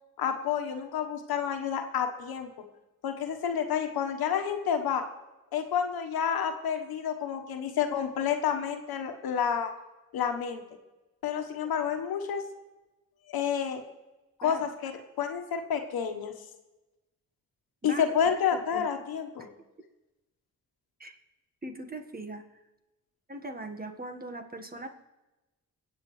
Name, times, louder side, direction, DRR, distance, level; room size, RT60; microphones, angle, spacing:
voice 1, 0.2-2.5 3.0-5.0 5.5-9.7 10.1-10.6 11.2-12.4 13.3-13.8 14.4-14.9 15.2-16.3 17.8-19.5, left 8 dB, 85° left, 6 dB, 1.3 m, -29 dB
voice 2, 18.5-18.9 19.4-19.5 21.0-21.2 21.6-22.4 23.3-24.9, right 2 dB, 25° right, 6 dB, 1.5 m, -40 dB
24.5 x 8.3 x 3.3 m, 1.1 s
cardioid pair, 65°, 36 cm